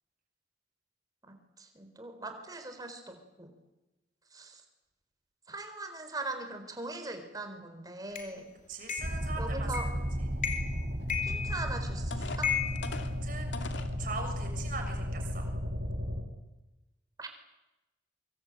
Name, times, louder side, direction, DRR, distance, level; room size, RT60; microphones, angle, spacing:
voice 1, 1.2-3.5 4.3-4.6 5.5-8.5 9.4-9.9 11.2-12.5 17.2-17.3, right 2 dB, 20° right, 7 dB, 4.1 m, -41 dB
sound 1, 8.2-8.3 8.9-9.2 9.7-10.0 10.4-10.8 11.1-11.9 12.4-13.7, left 8 dB, 45° left, 4.1 m, -34 dB
voice 2, 8.7-9.9 10.2-10.3 13.0-13.5 14.0-15.5, right 3 dB, 50° right, 4 dB, 6.8 m, -41 dB
sound 2, 9.0-16.2, equal, 80° right, 6.4 m, -34 dB
sound 3, 11.5-11.6 12.1-14.0 14.6-14.7 15.2-15.4, left 3 dB, 85° left, 2.6 m, -42 dB
25.0 x 24.5 x 9.0 m, 1.0 s
head